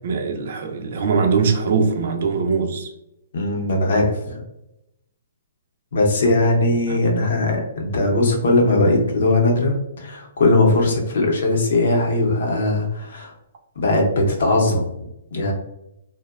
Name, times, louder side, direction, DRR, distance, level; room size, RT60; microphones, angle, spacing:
voice 1, 0.0-2.9 6.9-7.0, right 5 dB, 45° right, 0.3 m, -21 dB
voice 2, 3.3-4.4 5.9-13.3 13.8-15.5, left 2 dB, 55° left, 0.7 m, -19 dB
2.8 x 2.0 x 2.3 m
hypercardioid pair, 170°, 0 cm